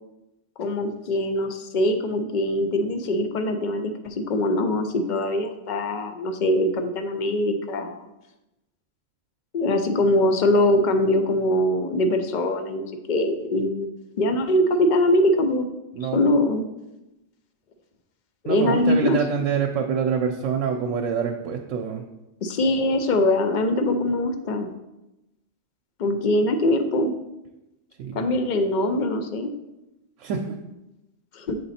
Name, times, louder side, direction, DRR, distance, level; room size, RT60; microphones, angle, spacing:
voice 1, 0.6-8.1 9.5-13.9 14.2-15.7 16.0-16.6 18.4-19.2 22.4-24.7 26.0-27.1 28.1-29.5 31.3-31.6, left 1 dB, 50° left, 7 dB, 0.6 m, -22 dB
voice 2, 15.9-16.3 18.4-22.0 28.0-28.2 30.2-30.6, right 6 dB, 85° right, 2 dB, 1.0 m, -26 dB
6.8 x 3.9 x 4.2 m, 0.95 s
omnidirectional pair, 1.3 m